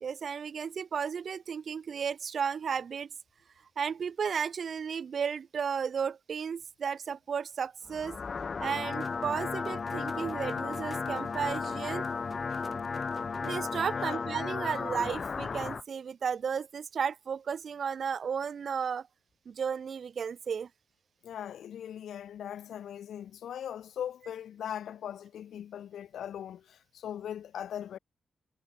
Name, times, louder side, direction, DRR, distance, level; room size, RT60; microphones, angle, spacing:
voice 1, 0.0-3.1 3.8-8.2 8.6-12.1 13.4-19.1 19.5-20.7, right 6 dB, 60° right, 0.5 m, -33 dB
sound 1, 7.9-15.8, left 5 dB, 50° left, 0.5 m, -34 dB
sound 2, 8.9-13.9, right 3 dB, 35° right, 4.0 m, -50 dB
voice 2, 13.9-14.3 21.2-28.0, left 9 dB, 75° left, 1.4 m, -40 dB
supercardioid pair, 45°, 0 cm